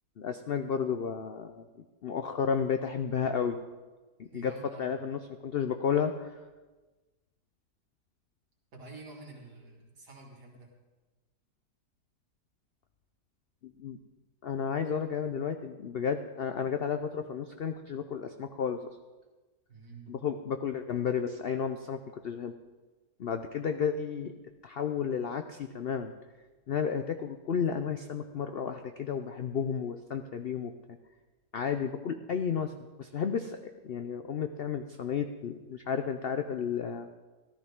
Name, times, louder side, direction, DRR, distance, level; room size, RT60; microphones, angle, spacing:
voice 1, 0.2-3.6 4.2-6.4 13.8-14.0 14.4-18.8 20.1-22.5 23.2-24.3 24.6-26.1 26.7-30.7 31.5-32.7 33.0-37.1, left 7 dB, 75° left, 8 dB, 0.5 m, -32 dB
voice 2, 4.3-5.0 8.7-10.7 19.7-20.1, right 3 dB, 85° right, -2 dB, 3.0 m, -49 dB
14.0 x 13.5 x 3.6 m, 1.2 s
omnidirectional pair, 1.7 m